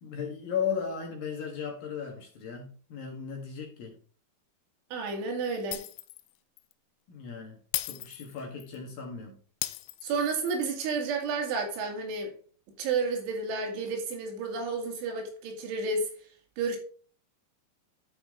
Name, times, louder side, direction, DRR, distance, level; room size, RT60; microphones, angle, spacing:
voice 1, 0.0-3.9 7.1-7.6 7.9-9.3, left 7 dB, 60° left, 3.0 m, -36 dB
voice 2, 4.9-5.8 10.0-12.3 12.8-16.1 16.6-16.8, right 4 dB, 75° right, 4.5 m, -31 dB
Shatter, 5.7-6.3 6.6-6.7 7.7-8.8 9.6-10.6, left 17 dB, 85° left, 3.0 m, -36 dB
12.0 x 5.7 x 3.7 m
omnidirectional pair, 5.5 m